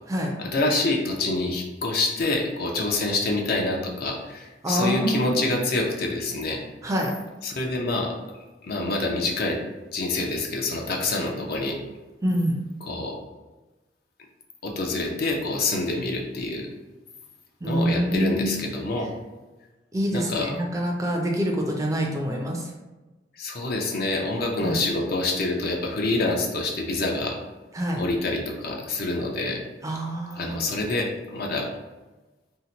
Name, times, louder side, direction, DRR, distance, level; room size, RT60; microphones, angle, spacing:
voice 1, 0.4-6.6 7.4-8.1 8.6-9.6 9.9-11.8 12.8-13.2 14.6-16.7 17.7-19.1 20.1-20.5 23.4-27.4 28.0-29.6 30.4-31.7, left 2 dB, 55° left, 0 dB, 0.5 m, -26 dB
voice 2, 4.6-5.6 6.8-7.1 12.2-12.6 17.6-18.6 19.9-22.7 24.6-24.8 27.7-28.0 29.8-30.6, equal, 20° right, 0 dB, 0.4 m, -26 dB
2.8 x 2.1 x 3.9 m, 1.1 s
head